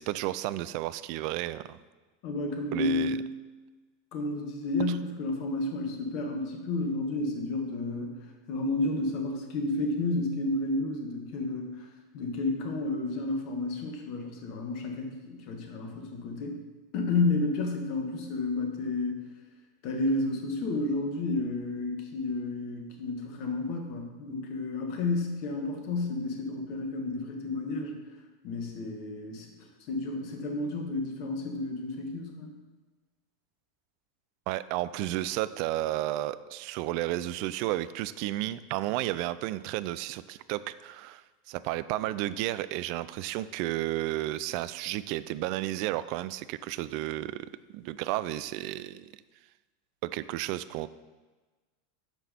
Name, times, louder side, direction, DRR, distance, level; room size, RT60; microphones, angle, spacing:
voice 1, 0.0-1.8 2.7-3.2 34.5-47.5 47.7-49.1 50.0-50.9, right 15 dB, 50° right, 15 dB, 0.3 m, -32 dB
voice 2, 2.2-3.3 4.1-11.9 12.1-16.6 16.9-19.2 19.8-28.0 28.4-29.5 29.9-32.5, left 2 dB, 50° left, 3 dB, 1.4 m, -31 dB
8.9 x 5.9 x 4.2 m, 1.3 s
figure-of-eight pair, 85°, 0 cm